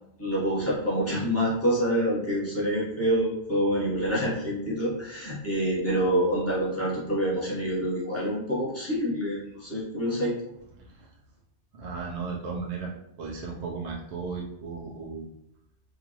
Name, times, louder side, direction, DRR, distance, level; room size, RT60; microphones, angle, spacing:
voice 1, 0.2-10.3, equal, 15° left, -8 dB, 1.3 m, -27 dB
voice 2, 11.7-12.9 13.2-15.3, right 4 dB, 90° right, -3 dB, 1.0 m, -35 dB
4.5 x 2.5 x 3.0 m, 0.80 s
omnidirectional pair, 1.1 m